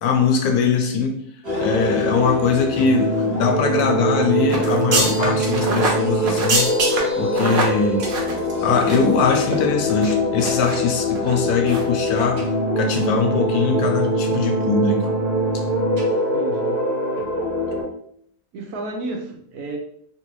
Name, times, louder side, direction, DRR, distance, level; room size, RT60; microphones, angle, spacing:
voice 1, 0.0-1.2 1.6-6.7 7.1-8.1 8.6-12.5 12.8-15.1, left 5 dB, 75° left, 1.0 m, -21 dB
sound 1, 1.4-17.8, equal, 30° right, 0.8 m, -23 dB
sound 2, 4.5-9.2 9.4-9.6 10.0-10.8 11.1-11.3 11.7-11.9 12.1-12.2, right 2 dB, 55° right, 0.6 m, -25 dB
voice 2, 16.3-16.9 18.5-19.8, right 2 dB, 75° right, 1.1 m, -31 dB
3.1 x 2.5 x 3.0 m
omnidirectional pair, 1.7 m